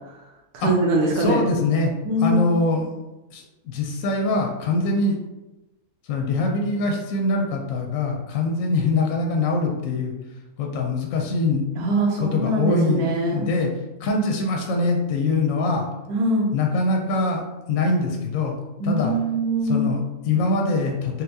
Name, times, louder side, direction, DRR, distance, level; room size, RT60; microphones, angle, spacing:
voice 1, 0.5-1.4 2.0-2.5 11.8-13.5 16.1-16.5 18.8-19.9, right 1 dB, 80° right, -2 dB, 1.1 m, -22 dB
voice 2, 1.1-1.9 2.2-2.9 3.3-5.2 6.1-10.1 10.6-11.6 12.2-13.7 14.0-15.8 16.5-17.4 17.7-18.5 18.8-19.1 19.6-21.2, left 3 dB, 70° left, 1 dB, 0.8 m, -23 dB
4.0 x 2.2 x 2.6 m, 1.0 s
omnidirectional pair, 1.7 m